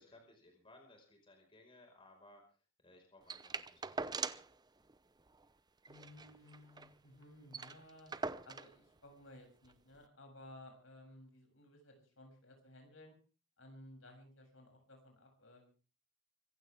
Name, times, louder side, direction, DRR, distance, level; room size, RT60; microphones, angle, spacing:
voice 1, 0.0-2.4 2.8-4.2, left 1 dB, 25° left, 3 dB, 4.9 m, -62 dB
sound 1, 3.3-4.6 4.9-5.0 5.3-5.5 5.9-6.9 7.2-7.3 7.5-8.8 9.7-9.8, right 4 dB, 20° right, 0.7 m, -42 dB
voice 2, 5.9-8.1 8.4-13.1 13.6-15.7, left 1 dB, 70° left, 3 dB, 7.3 m, -57 dB
25.0 x 15.5 x 3.5 m, 0.36 s
head